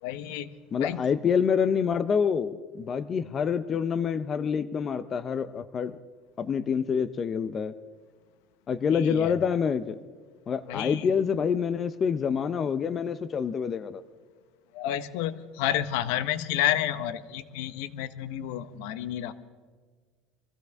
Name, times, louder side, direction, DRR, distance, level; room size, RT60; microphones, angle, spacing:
voice 1, 0.0-0.5 0.8-1.0 8.9-9.4 10.7-11.2 14.7-19.3, left 12 dB, 75° left, 13 dB, 0.9 m, -30 dB
voice 2, 0.7-5.9 6.4-7.7 8.7-10.0 10.5-14.0, left 6 dB, 25° left, 12 dB, 0.5 m, -27 dB
24.0 x 16.0 x 3.5 m, 1.5 s
cardioid pair, 155°, 0 cm